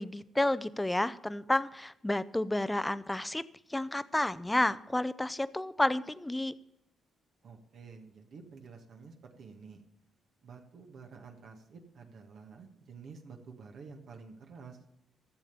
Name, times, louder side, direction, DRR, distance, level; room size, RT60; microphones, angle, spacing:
voice 1, 0.0-3.4 3.7-6.5, left 1 dB, 15° left, 15 dB, 0.6 m, -30 dB
voice 2, 7.4-9.8 10.4-14.8, right 5 dB, 65° right, 2 dB, 1.6 m, -50 dB
13.5 x 7.1 x 6.8 m, 0.86 s
supercardioid pair, 60°, 0 cm